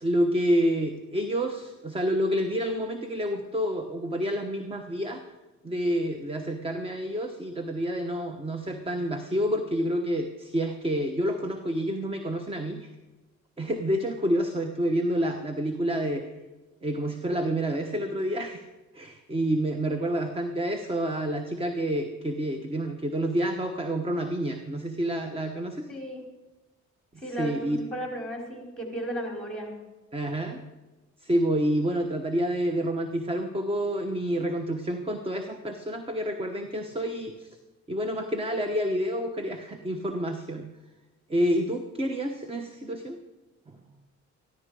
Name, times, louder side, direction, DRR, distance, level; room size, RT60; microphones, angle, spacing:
voice 1, 0.0-5.2 5.6-12.9 13.6-16.2 16.8-18.6 18.9-25.9 27.3-27.8 30.1-30.6 31.2-37.6 37.9-40.7 41.3-43.2, equal, 20° right, 6 dB, 1.1 m, -28 dB
voice 2, 25.9-26.2 27.2-29.7, equal, 5° left, 1 dB, 4.7 m, -35 dB
14.5 x 12.5 x 5.0 m, 1.1 s
cardioid pair, 90°, 30 cm